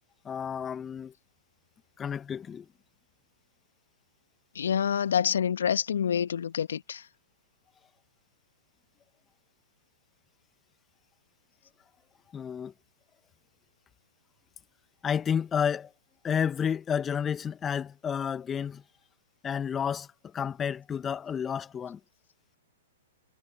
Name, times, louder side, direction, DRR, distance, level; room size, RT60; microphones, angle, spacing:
voice 1, 0.2-1.1 2.0-2.6 12.3-12.7 15.0-15.9 16.2-18.8 19.4-20.1 20.3-22.0, left 7 dB, 20° left, 1.7 m, -30 dB
voice 2, 4.5-7.0, left 8 dB, 65° left, 1.7 m, -27 dB
figure-of-eight pair, 110°, 0 cm